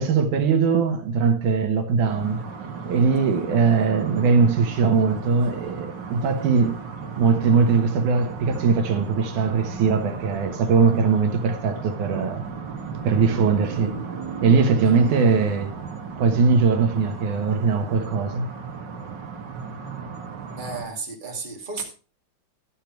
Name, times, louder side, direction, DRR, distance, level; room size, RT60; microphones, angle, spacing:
voice 1, 0.0-2.4 2.8-6.8 7.2-12.4 13.0-14.0 14.4-15.7 16.2-18.5, right 5 dB, 85° right, 2.9 m, -20 dB
sound 1, 2.0-20.8, right 5 dB, 45° right, 1.7 m, -35 dB
voice 2, 14.7-15.2 20.6-21.8, right 4 dB, 15° right, 2.3 m, -34 dB
12.0 x 8.8 x 4.6 m
omnidirectional pair, 3.5 m